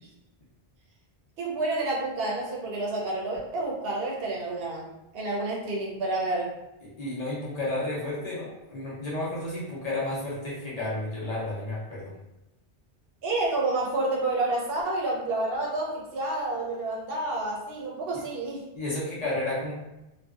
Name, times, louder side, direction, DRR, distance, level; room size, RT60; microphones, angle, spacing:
voice 1, 1.4-4.9 5.1-6.5 13.2-18.6, right 2 dB, 70° right, -2 dB, 0.8 m, -29 dB
voice 2, 6.8-12.1 18.1-18.2 18.7-19.7, left 2 dB, 45° left, -7 dB, 0.7 m, -32 dB
2.5 x 2.1 x 2.3 m, 0.93 s
omnidirectional pair, 1.0 m